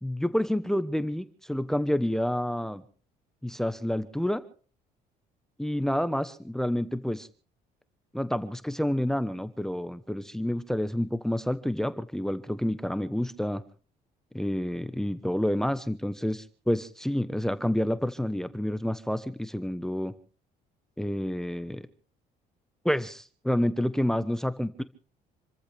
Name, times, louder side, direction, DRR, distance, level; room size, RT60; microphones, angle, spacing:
voice 1, 0.0-2.8 3.4-4.4 5.6-7.3 8.1-13.6 14.3-20.1 21.0-21.8 22.8-24.8, left 1 dB, 5° left, 13 dB, 1.0 m, -29 dB
28.0 x 14.5 x 3.5 m, 0.40 s
cardioid pair, 110°, 17 cm